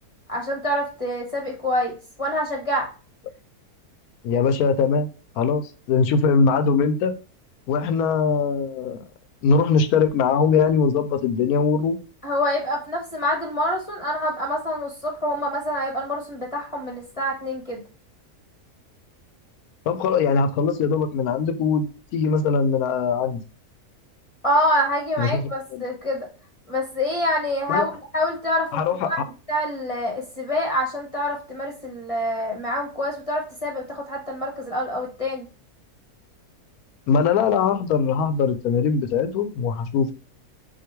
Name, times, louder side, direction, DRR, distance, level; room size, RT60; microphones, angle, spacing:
voice 1, 0.3-2.9 12.2-17.8 24.4-26.3 26.7-29.2 29.5-35.5, left 1 dB, 25° left, 0.9 m, -26 dB
voice 2, 4.2-5.1 5.4-7.1 7.7-9.0 9.4-12.0 19.9-23.4 25.2-25.8 27.7-27.9 28.7-29.2 37.1-40.1, left 5 dB, 75° left, 1.1 m, -21 dB
6.3 x 2.6 x 3.0 m
omnidirectional pair, 1.7 m